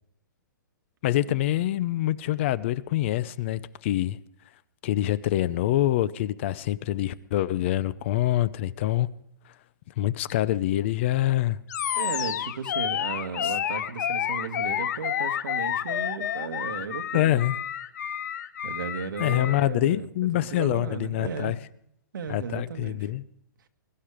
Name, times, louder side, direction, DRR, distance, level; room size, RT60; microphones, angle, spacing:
voice 1, 1.0-4.2 4.8-9.1 10.0-11.6 13.4-13.5 17.1-17.6 19.2-21.6 22.3-23.2, left 14 dB, 35° left, 0.7 m, -25 dB
Animal, 11.7-19.7, left 9 dB, 55° left, 1.1 m, -30 dB
voice 2, 12.0-17.4 18.6-20.1 20.3-21.5 22.1-23.1, right 6 dB, 85° right, 2.0 m, -35 dB
22.0 x 12.0 x 5.0 m
hypercardioid pair, 160°, 11 cm